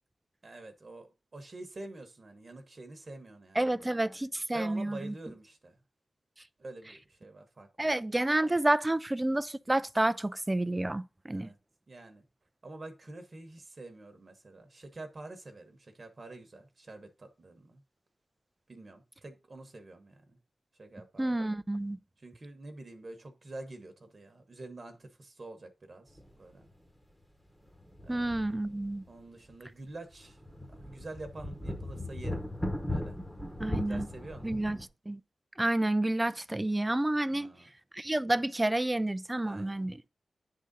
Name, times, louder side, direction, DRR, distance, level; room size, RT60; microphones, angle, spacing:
voice 1, 0.4-3.8 4.5-5.8 6.6-7.9 11.3-11.6 11.9-12.2 12.6-17.8 18.7-20.4 20.8-21.4 22.2-26.7 28.0-28.4 29.1-30.4 30.7-32.5 32.9-33.1 33.8-34.6 37.3-37.7 39.4-39.9, right 2 dB, 45° right, 1.0 m, -47 dB
voice 2, 3.6-5.1 7.8-11.5 21.2-22.0 28.1-29.0 33.6-34.1 34.4-34.8 35.1-35.2 35.6-37.5 37.9-40.0, right 1 dB, 15° right, 0.3 m, -29 dB
sound 1, 26.2-26.3 26.7-26.8 27.7-29.1 29.5-29.6 30.1-34.9, left 1 dB, 10° left, 1.2 m, -38 dB
9.6 x 3.7 x 4.0 m
wide cardioid pair, 90°, 0 cm